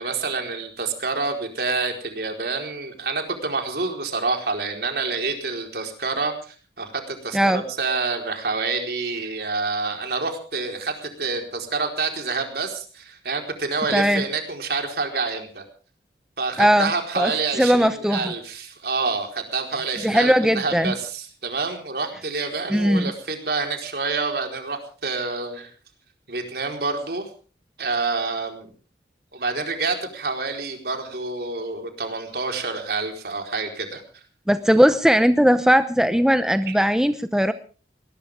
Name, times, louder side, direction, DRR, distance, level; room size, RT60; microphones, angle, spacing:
voice 1, 0.0-15.6 16.4-25.7 26.3-27.3 27.8-28.7 29.3-34.0 36.7-36.8, right 4 dB, 65° right, 4 dB, 4.5 m, -27 dB
voice 2, 13.9-14.2 16.6-16.9 17.2-17.3 17.6-18.3 20.0-21.0 22.7-23.1 34.5-37.5, equal, 5° right, 10 dB, 0.7 m, -18 dB
20.0 x 19.5 x 3.6 m, 0.38 s
head